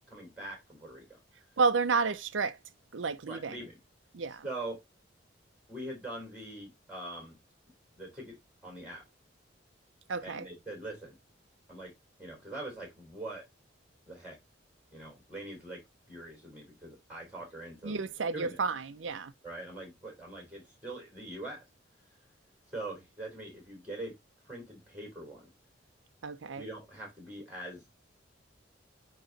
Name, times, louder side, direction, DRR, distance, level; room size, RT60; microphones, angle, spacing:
voice 1, 0.1-1.2 3.3-3.8 4.3-4.8 5.7-7.4 8.0-8.4 8.6-9.0 10.2-11.2 11.7-13.4 14.1-14.4 14.9-15.8 16.1-18.0 18.3-18.6 19.4-21.6 22.7-24.1 24.4-25.5 26.6-27.8, right 1 dB, 5° right, 4.2 m, -43 dB
voice 2, 1.6-2.6 2.9-3.5 4.1-4.4 10.1-10.4 17.8-19.3 26.2-26.6, right 4 dB, 80° right, 0.6 m, -31 dB
8.8 x 3.1 x 4.0 m
head